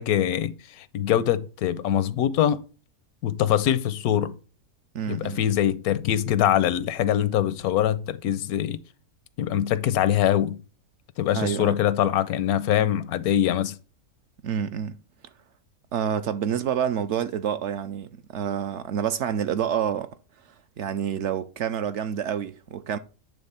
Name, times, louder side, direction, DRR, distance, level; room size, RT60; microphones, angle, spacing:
voice 1, 0.0-2.6 3.2-4.4 5.1-8.8 9.4-10.6 11.2-13.8, left 11 dB, 90° left, 1.1 m, -23 dB
voice 2, 4.9-5.4 11.3-11.7 14.4-15.0 15.9-20.1 20.8-23.0, right 8 dB, 65° right, 0.8 m, -28 dB
8.8 x 3.4 x 5.6 m
omnidirectional pair, 1.5 m